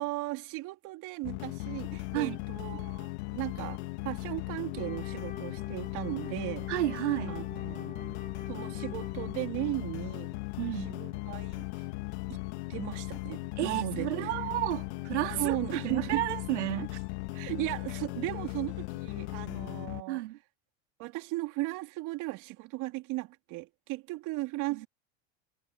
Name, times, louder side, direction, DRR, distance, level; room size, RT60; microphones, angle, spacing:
voice 1, 0.0-3.0 3.3-6.8 7.2-8.2 8.5-10.4 10.7-11.6 12.7-14.5 15.3-16.3 17.3-20.2 21.0-24.9, right 20 dB, 60° right, 3.6 m, -36 dB
sound 1, 1.2-20.0, left 22 dB, 75° left, 2.0 m, -38 dB
Wind instrument woodwind instrument, 4.7-9.9, left 5 dB, 25° left, 1.5 m, -46 dB
voice 2, 6.7-7.4 10.6-10.9 13.6-15.6 15.8-17.0 20.1-20.4 24.7-24.9, right 16 dB, 90° right, 3.0 m, -32 dB
supercardioid pair, 100°, 34 cm